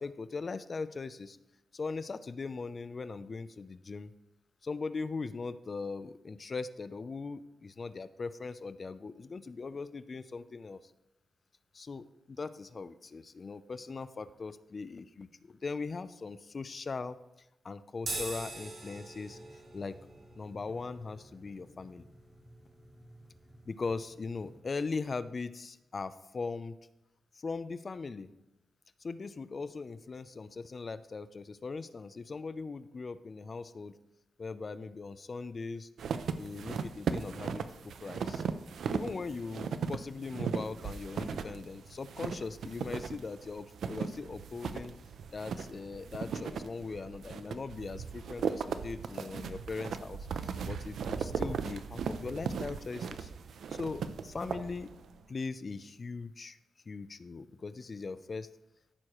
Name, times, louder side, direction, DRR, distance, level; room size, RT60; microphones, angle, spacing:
voice 1, 0.0-1.4 1.7-4.1 4.6-10.8 11.7-17.2 17.6-20.0 20.4-22.1 23.7-26.8 27.3-28.3 29.0-33.9 34.4-35.9 36.4-37.6 38.0-38.4 38.9-44.9 45.3-53.3 53.7-54.9 55.3-56.6 56.9-58.5, left 4 dB, 40° left, 14 dB, 0.4 m, -40 dB
sound 1, 18.0-24.6, right 2 dB, 55° right, 3.1 m, -45 dB
sound 2, 36.0-55.2, right 6 dB, 80° right, 0.5 m, -37 dB
14.0 x 6.4 x 3.0 m, 0.95 s
cardioid pair, 105°, 0 cm